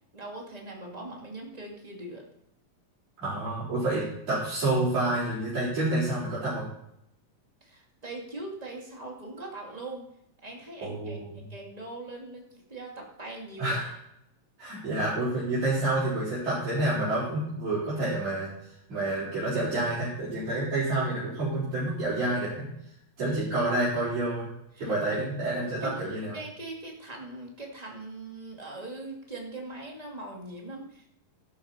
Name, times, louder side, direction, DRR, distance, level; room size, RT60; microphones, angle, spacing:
voice 1, 0.1-2.2 7.6-10.0 10.4-13.8 24.7-25.2 25.6-31.1, right 2 dB, 15° right, -1 dB, 1.7 m, -41 dB
voice 2, 3.2-6.6 10.8-11.4 13.6-13.9 14.6-18.5 18.9-22.7 23.2-24.5 24.8-26.4, right 2 dB, 55° right, -11 dB, 5.8 m, -28 dB
13.5 x 11.5 x 4.4 m, 0.79 s
omnidirectional pair, 4.0 m